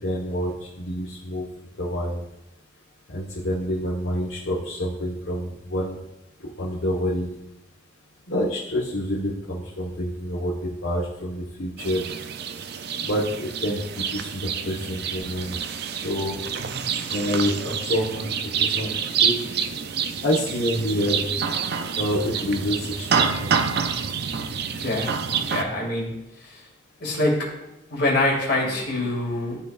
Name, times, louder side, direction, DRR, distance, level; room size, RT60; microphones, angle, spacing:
voice 1, 0.0-1.4 1.8-2.2 3.1-6.0 6.6-7.3 8.3-12.1 13.0-15.6 16.0-16.4 17.1-18.3 18.6-18.9 19.2-19.3 20.2-21.3 22.0-23.5, equal, 80° left, -7 dB, 1.4 m, -27 dB
sound 1, 11.8-25.6, right 7 dB, 60° right, 0.5 m, -27 dB
voice 2, 24.8-25.1 25.5-26.1 27.0-29.6, left 1 dB, 60° left, -3 dB, 2.4 m, -25 dB
12.5 x 4.2 x 2.5 m, 0.89 s
head